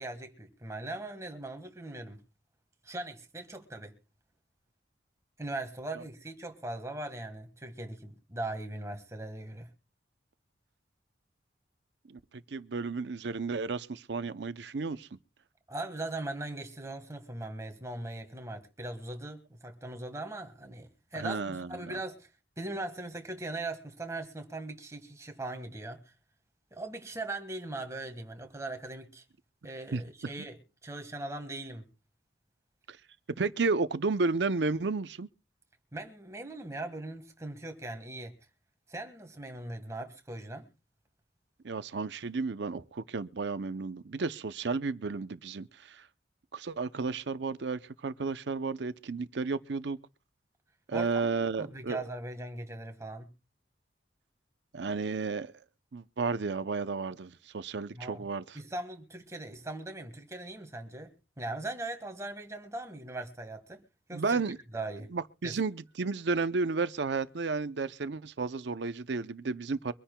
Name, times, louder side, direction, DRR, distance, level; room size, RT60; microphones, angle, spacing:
voice 1, 0.0-2.2 2.8-3.9 5.4-9.7 15.7-22.3 22.6-26.0 26.7-29.2 29.6-31.9 35.9-38.3 38.9-40.7 50.9-51.3 51.6-53.3 57.9-58.3 58.5-63.8 64.1-64.4 64.7-65.1 65.4-65.6, right 2 dB, 15° right, 1.5 m, -40 dB
voice 2, 12.5-15.1 21.1-21.8 29.9-30.0 32.9-33.0 33.4-35.3 41.6-46.0 46.5-50.0 50.9-52.0 54.7-55.5 55.9-58.6 64.1-64.6 65.1-69.9, right 4 dB, 70° right, 0.6 m, -32 dB
24.0 x 10.0 x 2.2 m
head